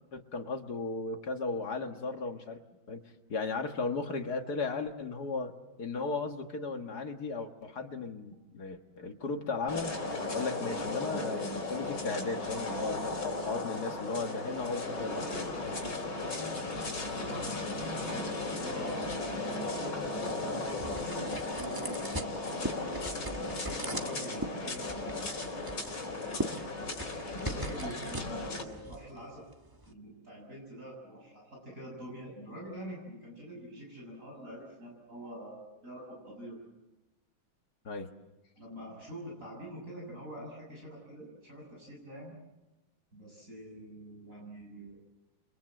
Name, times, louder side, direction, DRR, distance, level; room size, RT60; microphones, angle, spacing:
voice 1, 0.1-2.6 2.9-3.0 3.3-5.5 5.8-9.9 10.3-15.5 37.8-38.1, left 4 dB, 50° left, 5 dB, 2.1 m, -36 dB
sound 1, 9.7-28.6, left 2 dB, 70° left, 4.8 m, -36 dB
voice 2, 17.1-25.3 27.3-29.4 29.9-36.6 38.6-42.3 43.1-45.0, equal, 40° right, -2 dB, 7.3 m, -45 dB
sound 2, 19.7-29.9, right 1 dB, 15° right, 1.1 m, -41 dB
29.5 x 23.0 x 7.8 m, 1.1 s
omnidirectional pair, 2.3 m